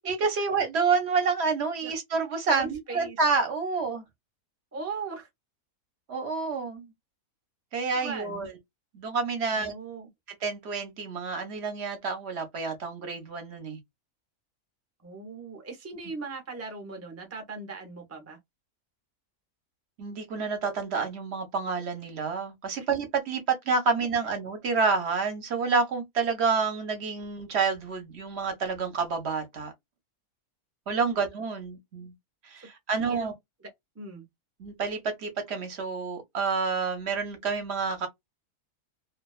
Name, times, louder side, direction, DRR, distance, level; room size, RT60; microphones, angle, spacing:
voice 1, 0.1-4.1 6.1-6.9 7.7-8.5 8.9-9.7 10.4-13.8 20.0-29.7 30.9-32.1 32.4-33.3 34.6-38.1, right 4 dB, 55° right, 0.8 m, -28 dB
voice 2, 2.5-3.2 4.7-5.3 7.9-8.5 9.5-10.1 15.0-18.4 32.6-33.3 33.9-34.2, right 4 dB, 25° right, 0.3 m, -39 dB
2.5 x 2.2 x 2.3 m
omnidirectional pair, 1.6 m